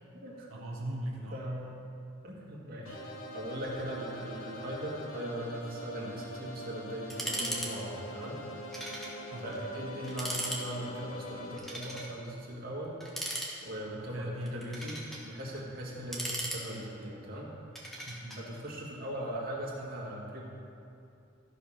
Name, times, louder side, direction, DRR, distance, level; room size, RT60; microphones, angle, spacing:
voice 1, 0.5-1.4 9.3-9.6 13.9-15.0 18.1-18.4, right 1 dB, 90° right, -2 dB, 1.0 m, -39 dB
voice 2, 1.3-1.6 2.2-3.0 3.3-8.4 9.4-13.0 13.6-15.0 15.2-17.5 18.4-20.4, right 1 dB, 50° right, -5 dB, 2.2 m, -39 dB
sound 1, 2.8-11.6, equal, 80° left, 1.0 m, -43 dB
sound 2, 7.1-7.7 8.0-8.1 8.7-9.1 9.5-9.6 10.0-10.6 11.6-12.1 13.0-13.9 14.5-15.2 15.9-17.0 17.7-18.4, right 1 dB, ahead, 1.4 m, -37 dB
14.0 x 5.1 x 5.8 m, 2.6 s
head